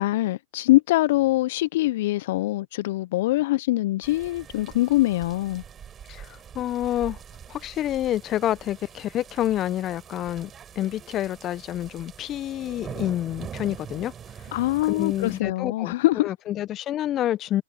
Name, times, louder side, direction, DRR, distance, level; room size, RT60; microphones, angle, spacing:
voice 1, 0.0-5.6 14.5-16.3, left 17 dB, 60° left, 0.7 m, -23 dB
sound 1, 4.0-15.4, right 8 dB, 25° right, 7.3 m, -43 dB
voice 2, 6.1-7.2 7.5-14.1 14.4-14.5 14.9-16.0 16.2-17.6, left 12 dB, 30° left, 1.0 m, -28 dB
hypercardioid pair, 105°, 0 cm